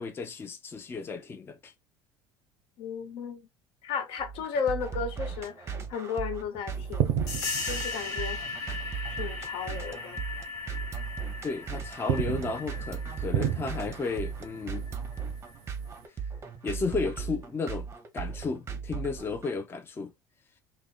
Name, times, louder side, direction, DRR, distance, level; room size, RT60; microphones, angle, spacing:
voice 1, 0.0-1.7 11.4-14.8 16.6-17.9 18.1-20.1, left 4 dB, 25° left, 0.4 m, -33 dB
voice 2, 2.8-3.4 3.8-7.2 7.7-8.4 9.1-10.2, left 6 dB, 65° left, 0.6 m, -34 dB
sound 1, 4.2-19.6, right 6 dB, 25° right, 0.6 m, -37 dB
sound 2, 6.8-9.7 10.0-10.2 10.8-11.5 11.9-16.0, right 11 dB, 80° right, 0.4 m, -34 dB
sound 3, 7.3-15.6, left 4 dB, 40° left, 1.0 m, -38 dB
2.5 x 2.1 x 2.3 m
supercardioid pair, 85°, 10 cm